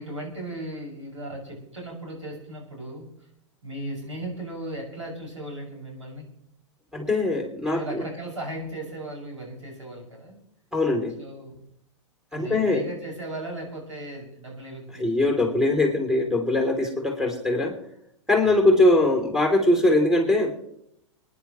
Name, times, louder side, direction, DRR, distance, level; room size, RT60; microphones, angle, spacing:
voice 1, 0.0-3.1 3.6-6.2 7.6-10.4 11.1-11.5 12.3-15.5 18.4-18.8, right 1 dB, 90° right, -2 dB, 6.3 m, -37 dB
voice 2, 6.9-8.0 10.7-11.1 12.3-12.8 15.0-17.8 18.3-20.5, left 2 dB, 5° right, 2 dB, 3.1 m, -21 dB
28.0 x 10.5 x 3.1 m, 0.74 s
hypercardioid pair, 105°, 15 cm